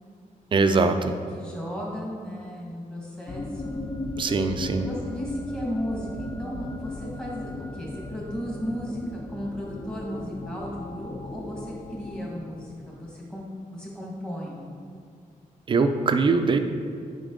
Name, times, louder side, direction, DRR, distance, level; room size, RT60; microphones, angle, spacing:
voice 1, 0.5-1.1 4.2-4.9 15.7-16.6, right 4 dB, 35° right, 7 dB, 0.4 m, -22 dB
voice 2, 1.1-3.8 4.8-14.6, equal, 5° left, -4 dB, 1.5 m, -35 dB
sound 1, 3.3-13.1, left 2 dB, 25° left, 0.4 m, -37 dB
8.8 x 5.3 x 3.7 m, 2.2 s
wide cardioid pair, 175°, 14 cm